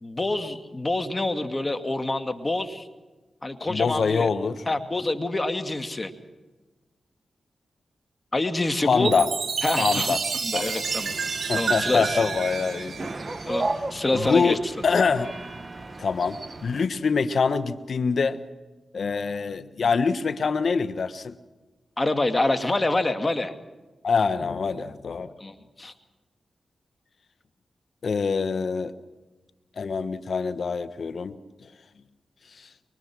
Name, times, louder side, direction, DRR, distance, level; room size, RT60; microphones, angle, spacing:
voice 1, 0.0-2.9 3.4-4.3 4.7-6.1 8.3-9.1 9.6-11.2 11.6-12.2 13.5-14.6 22.0-23.5 25.4-25.9, left 2 dB, 35° left, 9 dB, 2.3 m, -26 dB
voice 2, 3.7-4.6 8.8-9.3 9.8-10.2 10.5-10.7 11.5-13.1 14.1-15.3 16.0-18.4 18.9-21.3 24.0-25.3 28.0-28.9 29.8-31.4, left 5 dB, 65° left, 12 dB, 1.3 m, -24 dB
Chime, 9.0-13.7, right 5 dB, 65° right, 1.9 m, -29 dB
sound 1, 10.8-16.9, right 2 dB, 40° right, 1.2 m, -35 dB
24.0 x 23.5 x 6.2 m, 1.2 s
supercardioid pair, 40°, 0 cm